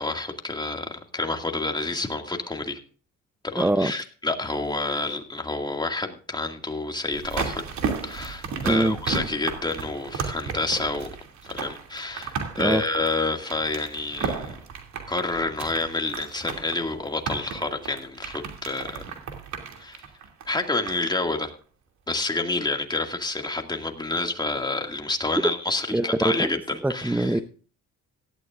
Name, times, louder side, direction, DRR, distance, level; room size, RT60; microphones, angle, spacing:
voice 1, 0.0-2.8 3.4-7.6 8.0-11.1 11.5-14.6 15.1-19.0 19.8-20.0 20.5-21.5 22.1-27.4, left 2 dB, 15° left, 4 dB, 2.1 m, -28 dB
voice 2, 3.6-3.9 8.7-9.0 12.6-12.8 25.9-26.6 26.8-27.4, right 1 dB, 5° right, 11 dB, 0.6 m, -23 dB
sound 1, 7.1-21.1 21.4-21.5, right 5 dB, 70° right, 2.7 m, -34 dB
17.5 x 12.0 x 2.5 m, 0.40 s
cardioid pair, 90°, 30 cm